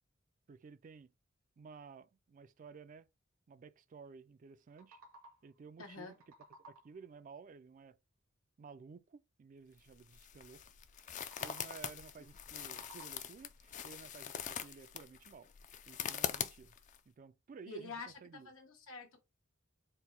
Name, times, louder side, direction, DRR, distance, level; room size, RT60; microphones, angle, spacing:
voice 1, 0.5-1.1 1.6-3.1 3.5-5.0 5.4-6.2 6.7-8.0 8.6-10.6 11.4-15.5 15.9-16.7 17.1-18.5, right 5 dB, 40° right, 0.3 m, -54 dB
sound 1, 4.5-5.6 5.9-7.1 11.1-12.0 12.4-13.5, right 1 dB, 80° right, 1.0 m, -59 dB
voice 2, 5.8-6.1 17.7-19.2, left 3 dB, 90° left, 1.3 m, -47 dB
sound 2, 9.8-17.0, left 8 dB, 40° left, 0.4 m, -43 dB
4.4 x 2.1 x 3.8 m
head